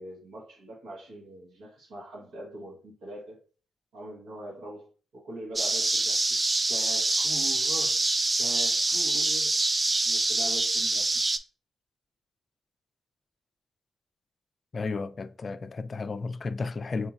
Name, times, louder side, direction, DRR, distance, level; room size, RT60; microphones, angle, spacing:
voice 1, 0.0-3.4 3.9-4.9 5.1-6.4 6.7-9.6 10.0-11.2, right 1 dB, 80° right, 1.1 m, -42 dB
sound 1, 5.6-11.4, right 2 dB, 35° right, 0.4 m, -25 dB
voice 2, 14.7-17.1, left 4 dB, 50° left, 0.3 m, -33 dB
4.4 x 2.9 x 2.4 m
supercardioid pair, 40°, 0 cm